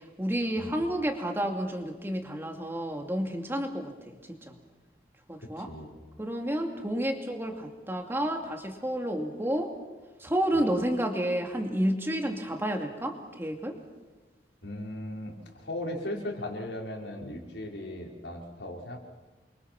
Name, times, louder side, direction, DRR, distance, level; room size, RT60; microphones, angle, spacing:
voice 1, 0.2-4.2 4.5-4.6 5.3-5.7 6.2-9.7 10.2-13.7, right 1 dB, 15° right, 3 dB, 2.5 m, -30 dB
voice 2, 5.4-6.0 10.5-10.7 14.6-19.0, left 1 dB, 80° left, -1 dB, 5.2 m, -38 dB
29.0 x 24.0 x 6.1 m, 1.3 s
head